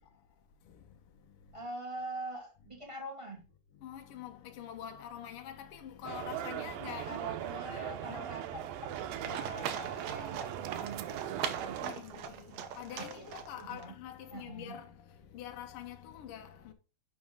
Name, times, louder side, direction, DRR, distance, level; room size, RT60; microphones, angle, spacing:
voice 1, 0.6-1.6 3.7-8.2 8.8-8.9 10.1-10.2 11.8-16.7, left 10 dB, 80° left, 1.2 m, -46 dB
voice 2, 1.5-3.4 7.0-12.2 13.0-13.3 13.6-14.0 14.3-14.8, right 2 dB, 10° right, 2.0 m, -44 dB
sound 1, 6.0-11.9, right 11 dB, 90° right, 2.5 m, -40 dB
Livestock farm animals working animals, 8.9-13.8, right 8 dB, 70° right, 2.0 m, -41 dB
11.0 x 4.1 x 3.7 m
omnidirectional pair, 4.0 m